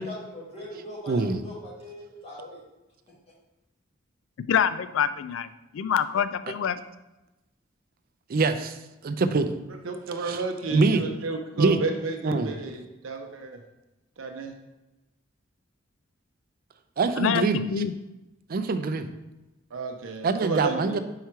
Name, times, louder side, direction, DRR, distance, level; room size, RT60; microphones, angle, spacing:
voice 1, 0.0-2.6, equal, 30° left, -6 dB, 2.0 m, -40 dB
voice 2, 1.1-1.4 8.3-8.8 9.0-9.5 10.2-10.4 10.7-11.0 11.6-11.8 12.2-12.5 17.0-17.6 18.5-19.1 20.2-21.0, right 4 dB, 50° right, 9 dB, 0.4 m, -24 dB
voice 3, 4.5-6.8 17.2-17.9, left 8 dB, 75° left, 13 dB, 0.3 m, -26 dB
voice 4, 9.8-13.6 14.2-14.5 19.7-21.0, right 3 dB, 85° right, 3 dB, 0.6 m, -32 dB
4.7 x 4.4 x 4.6 m, 1.0 s
head